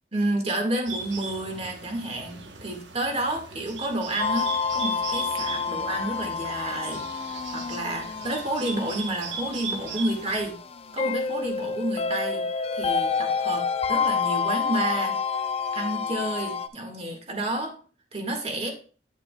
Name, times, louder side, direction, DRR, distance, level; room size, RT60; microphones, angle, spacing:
voice 1, 0.1-10.6 10.9-12.5 12.7-15.2 15.7-17.8 18.1-18.7, right 1 dB, 35° right, 3 dB, 1.6 m, -30 dB
Bird, 0.9-10.5, right 4 dB, 80° right, 1.0 m, -38 dB
sound 1, 4.2-16.7, left 5 dB, 35° left, 0.5 m, -29 dB
9.1 x 8.0 x 2.2 m, 0.38 s
head